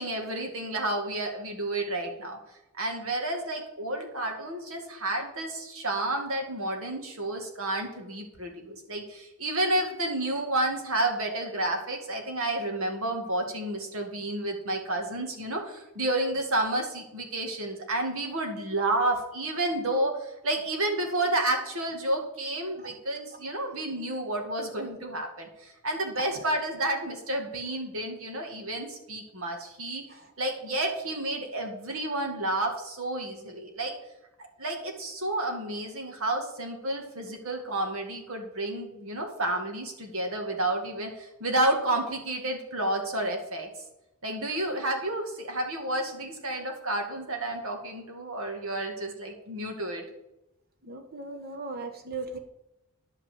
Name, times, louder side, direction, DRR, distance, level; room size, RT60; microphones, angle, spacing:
voice 1, 0.0-2.4 2.8-30.0 30.4-33.9 34.6-43.7 44.2-50.0, right 1 dB, 70° right, 3 dB, 2.1 m, -30 dB
voice 2, 50.8-52.4, right 3 dB, 45° right, 4 dB, 1.3 m, -38 dB
10.5 x 5.2 x 7.9 m, 0.91 s
head